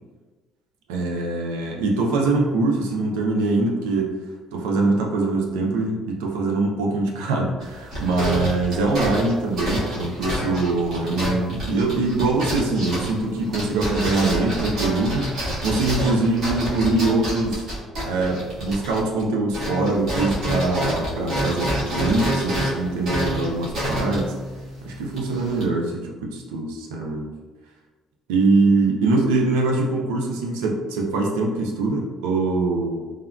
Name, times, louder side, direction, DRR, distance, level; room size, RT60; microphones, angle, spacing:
voice 1, 0.9-4.1 4.5-17.6 18.0-24.3 24.8-27.3 28.3-33.0, right 3 dB, 90° right, 0 dB, 0.4 m, -23 dB
sound 1, 7.6-19.2 19.5-25.6, equal, 65° right, 1.3 m, -28 dB
3.3 x 2.2 x 2.3 m, 1.3 s
supercardioid pair, 75°, 0 cm